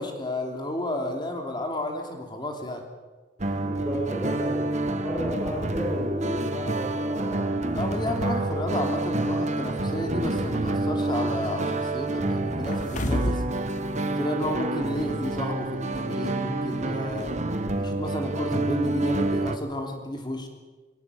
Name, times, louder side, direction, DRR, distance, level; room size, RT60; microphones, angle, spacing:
voice 1, 0.0-2.8 7.8-13.4 14.0-17.3 17.8-20.5, left 1 dB, 25° left, 3 dB, 2.9 m, -32 dB
sound 1, 3.4-19.6, right 2 dB, 40° right, 1.4 m, -28 dB
voice 2, 3.6-7.6, equal, 5° right, -7 dB, 6.6 m, -33 dB
sound 2, 12.7-13.6 13.9-14.0, equal, 45° left, 2.6 m, -27 dB
22.0 x 19.0 x 8.3 m, 1.3 s
head